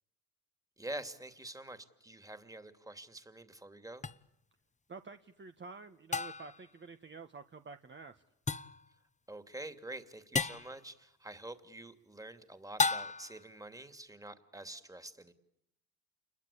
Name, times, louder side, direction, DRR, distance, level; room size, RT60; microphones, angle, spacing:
voice 1, 0.8-4.1 9.3-15.3, right 1 dB, 10° right, 9 dB, 2.7 m, -47 dB
sound 1, 4.0-4.1 6.1-6.6 8.5-8.8 10.3-10.7 12.8-13.4, left 4 dB, 20° left, 1.0 m, -33 dB
voice 2, 4.9-8.2, right 4 dB, 30° right, 7 dB, 1.5 m, -49 dB
29.0 x 22.0 x 8.5 m, 0.78 s
supercardioid pair, 75°, 35 cm